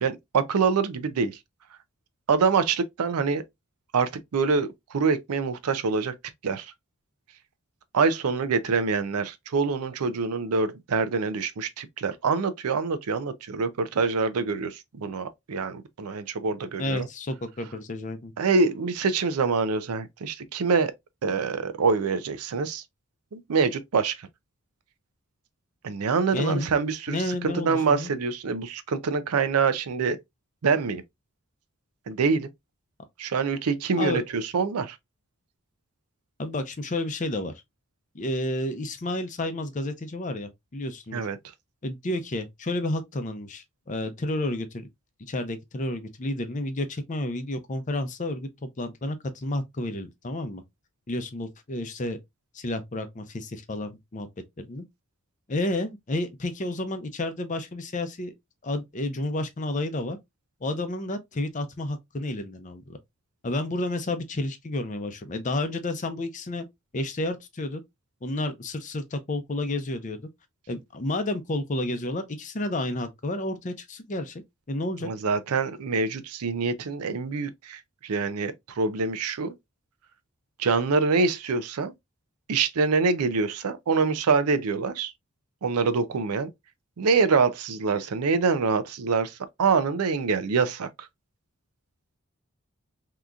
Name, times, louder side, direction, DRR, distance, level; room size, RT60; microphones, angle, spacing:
voice 1, 0.0-1.4 2.3-3.4 3.9-6.1 6.4-6.7 7.9-17.1 18.4-20.9 21.2-22.8 23.3-24.3 25.8-30.2 30.6-31.0 32.1-32.5 33.2-35.0 41.1-41.4 75.0-79.5 80.6-81.9 82.5-85.1 85.6-86.5 87.0-91.1, right 4 dB, 85° right, 0.5 m, -25 dB
voice 2, 16.8-18.3 26.3-26.7 27.1-28.1 34.0-34.2 36.4-37.5 38.1-41.3 41.8-44.9 45.3-50.6 51.1-52.2 52.5-54.3 54.6-54.9 55.5-58.3 58.6-60.2 60.6-63.0 63.4-66.7 66.9-67.8 68.2-70.2 70.7-74.4 74.7-75.1, left 1 dB, 35° left, 0.5 m, -31 dB
3.6 x 2.9 x 2.4 m
head